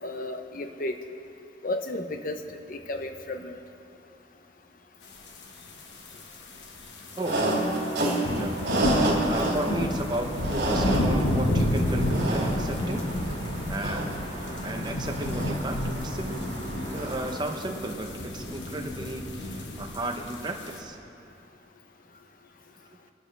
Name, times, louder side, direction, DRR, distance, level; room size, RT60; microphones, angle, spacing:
voice 1, 0.0-0.9 1.6-2.4 2.7-3.6, left 1 dB, 50° left, 6 dB, 0.8 m, -33 dB
sound 1, 5.3-5.4 5.7-20.8, left 1 dB, 85° left, 1.3 m, -30 dB
voice 2, 7.1-7.5 8.3-13.1 13.7-14.0 14.6-16.4 16.9-21.0, right 1 dB, 25° right, 3 dB, 0.9 m, -34 dB
sound 2, 7.2-17.5, right 1 dB, 70° right, 3.1 m, -30 dB
21.0 x 11.5 x 3.4 m, 2.7 s
head